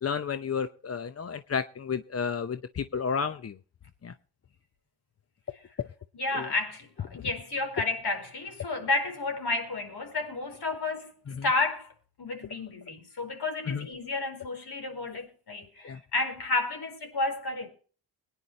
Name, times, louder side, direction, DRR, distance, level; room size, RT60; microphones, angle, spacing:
voice 1, 0.0-3.6 4.0-4.1 6.3-6.5 11.4-11.5 13.7-13.9 15.8-16.0, left 6 dB, 30° left, 0.7 m, -32 dB
voice 2, 6.1-11.1 11.4-11.9 12.2-17.7, left 3 dB, 50° left, 4.6 m, -31 dB
22.0 x 10.0 x 3.1 m
hypercardioid pair, 45°, 50 cm